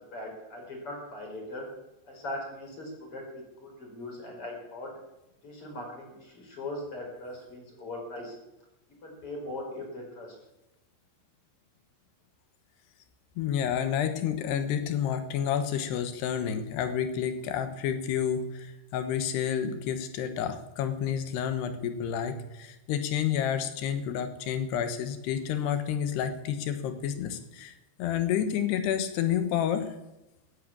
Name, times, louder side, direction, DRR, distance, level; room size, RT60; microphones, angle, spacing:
voice 1, 0.0-1.6 2.1-4.9 5.4-8.3 9.0-10.4, left 1 dB, 30° left, 1 dB, 5.1 m, -40 dB
voice 2, 13.4-27.7 28.0-30.0, left 9 dB, 70° left, 9 dB, 2.7 m, -30 dB
15.0 x 10.5 x 8.6 m, 0.94 s
omnidirectional pair, 5.9 m